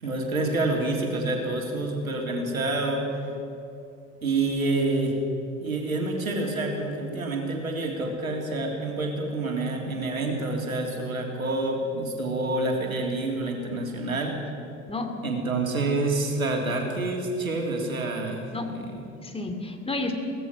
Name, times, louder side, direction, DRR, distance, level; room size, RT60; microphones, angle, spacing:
voice 1, 0.0-3.1 4.2-5.1 5.6-14.3 15.2-19.0, right 2 dB, 85° right, 1 dB, 3.4 m, -28 dB
voice 2, 14.9-15.2 18.5-18.8 19.2-20.1, left 2 dB, 15° left, 5 dB, 2.6 m, -31 dB
23.5 x 18.0 x 6.3 m, 2.6 s
figure-of-eight pair, 75°, 41 cm